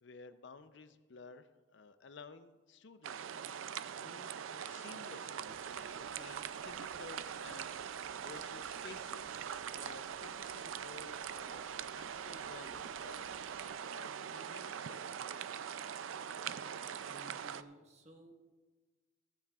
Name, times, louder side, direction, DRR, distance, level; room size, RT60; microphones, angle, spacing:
voice 1, 0.0-9.4 9.7-13.4 13.9-15.1, left 4 dB, 65° left, 11 dB, 0.6 m, -54 dB
sound 1, 3.0-17.6, right 8 dB, 80° right, 0.4 m, -43 dB
Crumpling crinkling, 5.5-13.6, equal, 5° right, 4.1 m, -67 dB
voice 2, 16.3-18.3, right 1 dB, 35° right, 3 dB, 1.4 m, -58 dB
15.5 x 15.0 x 2.4 m, 1.3 s
head